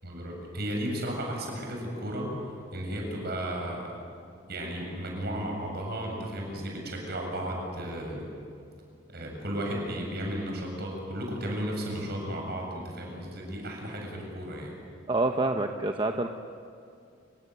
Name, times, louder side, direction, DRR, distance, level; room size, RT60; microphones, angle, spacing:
voice 1, 0.0-2.3 2.7-3.9 4.5-8.3 9.1-14.7, equal, 55° right, 0 dB, 7.7 m, -34 dB
voice 2, 15.1-16.3, right 2 dB, 25° right, 4 dB, 1.0 m, -27 dB
29.5 x 17.0 x 9.5 m, 2.4 s
head